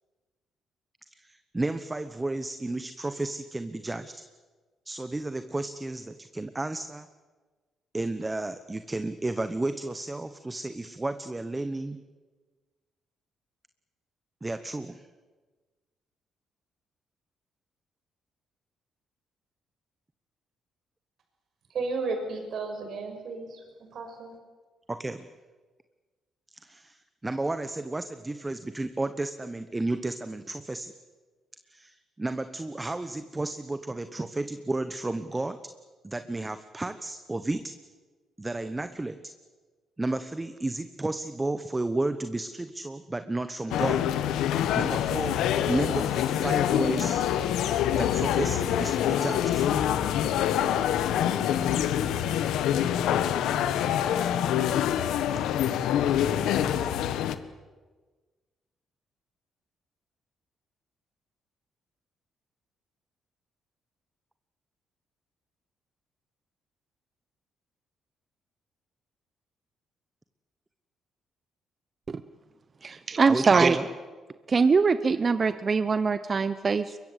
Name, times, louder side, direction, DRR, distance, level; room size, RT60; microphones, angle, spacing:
voice 1, 1.1-4.1 4.9-7.1 7.9-12.0 14.4-15.0 24.9-25.3 26.6-30.9 31.7-35.6 36.0-37.7 38.4-39.2 40.0-44.0 44.8-45.4 45.7-47.3 47.9-49.7 73.3-73.8, right 2 dB, 15° right, 11 dB, 1.1 m, -32 dB
voice 2, 21.7-23.6 23.9-24.3, right 3 dB, 65° right, 4 dB, 6.0 m, -33 dB
sound 1, 43.7-57.4, left 10 dB, 85° left, 1.2 m, -25 dB
voice 3, 72.8-73.8 74.5-77.0, right 5 dB, 40° right, 12 dB, 0.9 m, -23 dB
23.5 x 21.5 x 8.2 m, 1.3 s
cardioid pair, 90°, 0 cm